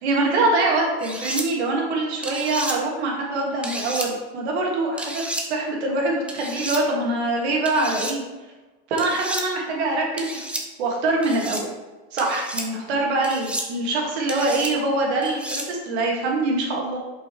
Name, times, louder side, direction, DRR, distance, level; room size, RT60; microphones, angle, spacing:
voice 1, 0.0-5.2 5.5-8.2 8.9-10.4 10.8-11.7 12.1-17.0, right 2 dB, 85° right, -1 dB, 2.0 m, -24 dB
sound 1, 1.0-1.5 2.2-2.8 3.6-4.1 5.0-5.5 6.3-6.8 7.7-8.1 9.0-9.4 10.2-10.6 11.2-11.6 12.2-12.7 13.2-13.7 14.3-14.7 15.2-15.7, right 1 dB, 5° right, 0.6 m, -31 dB
6.9 x 5.5 x 3.1 m, 1.2 s
supercardioid pair, 135°, 32 cm